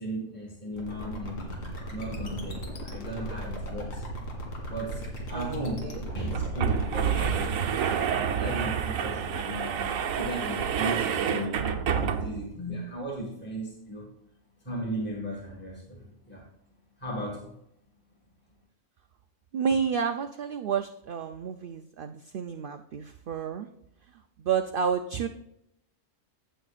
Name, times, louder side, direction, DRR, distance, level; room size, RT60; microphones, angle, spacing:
voice 1, 0.0-4.0 4.7-7.6 8.0-14.1 14.6-16.5 17.0-17.6, right 1 dB, 10° left, -2 dB, 1.8 m, -36 dB
sound 1, 0.7-7.5, equal, 75° left, 2.5 m, -37 dB
sound 2, 4.9-5.0 5.3-5.4 6.1-12.5, right 7 dB, 80° right, 1.3 m, -29 dB
voice 2, 10.9-11.4 19.5-23.7 24.4-25.3, right 7 dB, 55° right, 7 dB, 0.6 m, -30 dB
16.0 x 6.7 x 2.4 m, 0.79 s
omnidirectional pair, 1.4 m